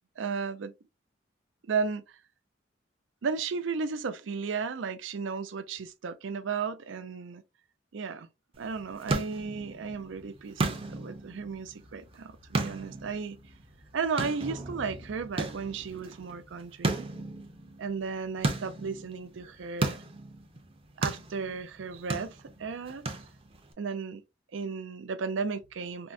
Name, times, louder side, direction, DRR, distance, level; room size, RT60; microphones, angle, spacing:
voice 1, 0.2-0.7 1.7-2.2 3.2-7.4 7.9-8.3 8.6-10.6 10.9-13.4 13.9-17.1 17.8-20.0 21.0-23.1 23.8-24.2 24.5-26.1, right 5 dB, 85° right, 0.4 m, -34 dB
sound 1, 8.5-23.7, right 2 dB, 30° right, 0.5 m, -36 dB
3.6 x 2.1 x 2.5 m
head